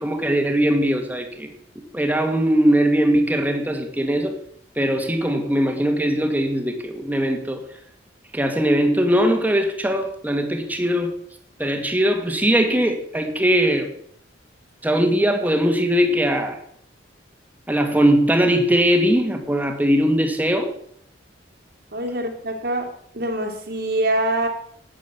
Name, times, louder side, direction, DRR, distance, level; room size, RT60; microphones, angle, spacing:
voice 1, 0.0-1.5 1.9-4.3 4.8-7.6 8.3-11.2 11.6-13.9 14.8-16.6 17.7-20.7, equal, 10° right, 4 dB, 2.1 m, -20 dB
voice 2, 21.9-24.5, right 1 dB, 60° right, 2 dB, 2.7 m, -24 dB
12.5 x 9.1 x 7.4 m, 0.65 s
head